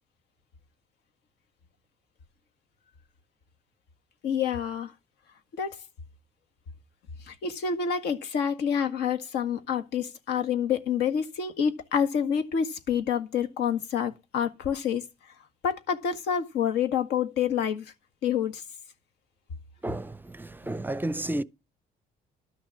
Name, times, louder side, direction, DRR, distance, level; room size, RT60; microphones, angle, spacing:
voice 1, 4.2-4.9 5.6-5.8 7.3-15.0 15.6-17.9 18.2-18.6, left 7 dB, 80° left, 1.8 m, -27 dB
voice 2, 19.8-21.4, right 1 dB, 10° right, 0.6 m, -32 dB
12.5 x 6.4 x 7.5 m
cardioid pair, 110°, 17 cm